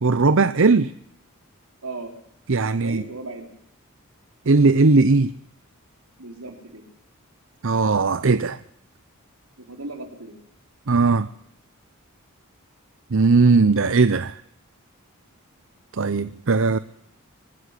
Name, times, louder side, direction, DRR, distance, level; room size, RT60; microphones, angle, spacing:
voice 1, 0.0-0.9 2.5-3.1 4.5-5.3 7.6-8.6 10.9-11.3 13.1-14.4 15.9-16.8, right 3 dB, 60° right, 0.7 m, -18 dB
voice 2, 2.8-3.5 6.2-6.8 9.6-10.3, right 2 dB, 80° right, 4.3 m, -36 dB
25.0 x 13.0 x 8.4 m
head